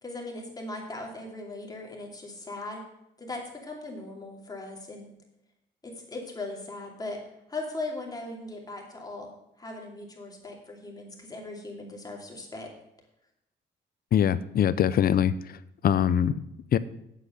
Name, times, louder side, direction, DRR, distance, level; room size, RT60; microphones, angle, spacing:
voice 1, 0.0-2.8 3.2-5.1 5.8-7.2 7.5-9.3 9.6-12.7, left 2 dB, 20° left, 0 dB, 2.7 m, -38 dB
voice 2, 14.1-15.6 15.8-16.4 16.7-16.8, left 9 dB, 55° left, 16 dB, 0.5 m, -23 dB
8.2 x 7.9 x 6.7 m, 0.83 s
cardioid pair, 110°, 19 cm